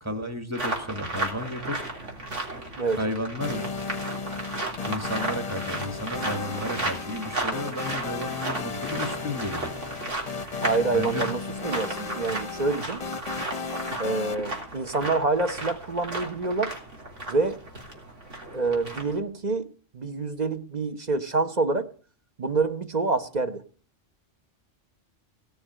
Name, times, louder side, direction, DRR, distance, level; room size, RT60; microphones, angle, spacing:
voice 1, 0.0-1.8 3.0-3.7 4.9-9.7 10.9-11.3, left 1 dB, 15° right, 2.1 m, -32 dB
sound 1, 0.5-19.2, right 2 dB, 75° right, 3.7 m, -34 dB
sound 2, 3.4-14.3, left 5 dB, 35° left, 0.8 m, -35 dB
voice 2, 10.6-13.0 14.0-16.7 17.3-17.6 18.5-19.7 19.9-21.9 22.4-23.6, right 3 dB, 40° right, 1.1 m, -27 dB
17.0 x 7.0 x 9.4 m
omnidirectional pair, 1.3 m